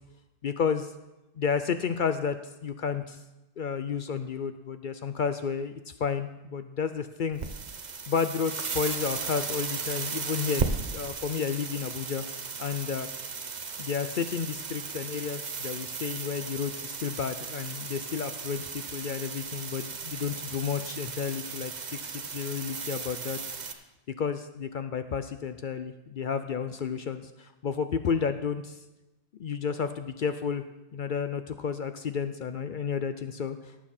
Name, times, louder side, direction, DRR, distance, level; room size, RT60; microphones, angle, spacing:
voice 1, 0.4-0.9 1.4-3.2 3.6-5.7 6.0-7.4 8.1-12.3 12.6-13.1 13.8-21.7 22.0-23.4 23.7-23.8 24.2-28.8 29.4-30.6 30.9-33.6, left 6 dB, 55° left, 10 dB, 0.6 m, -31 dB
sound 1, 7.3-23.7, right 5 dB, 40° right, 0.9 m, -36 dB
17.5 x 7.3 x 4.3 m, 1.0 s
omnidirectional pair, 1.2 m